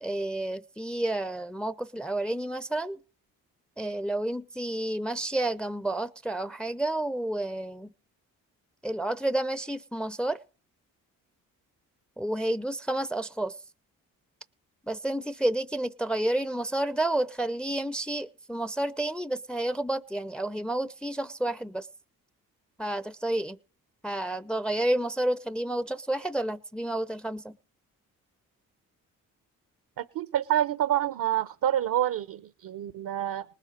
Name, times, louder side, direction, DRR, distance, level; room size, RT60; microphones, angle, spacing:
voice 1, 0.0-3.0 3.8-7.9 8.8-10.4 12.2-13.5 14.9-21.9 22.8-23.6 24.0-27.5, right 1 dB, 5° left, 0.6 m, -30 dB
voice 2, 30.0-33.4, right 12 dB, 65° right, 0.8 m, -27 dB
19.5 x 7.6 x 5.1 m
supercardioid pair, 55°, 35 cm